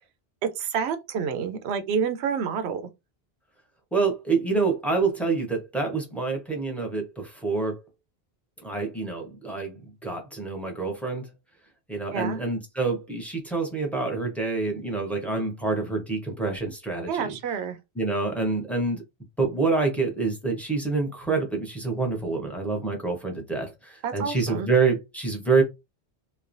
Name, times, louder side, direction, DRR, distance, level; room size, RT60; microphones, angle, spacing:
voice 1, 0.4-2.8 12.1-12.4 17.1-17.8 24.0-24.7, right 6 dB, 85° right, 0.8 m, -28 dB
voice 2, 3.9-7.8 8.6-11.3 11.9-17.3 18.0-19.0 19.4-25.6, right 4 dB, ahead, 0.7 m, -27 dB
3.0 x 2.2 x 2.5 m
omnidirectional pair, 1.1 m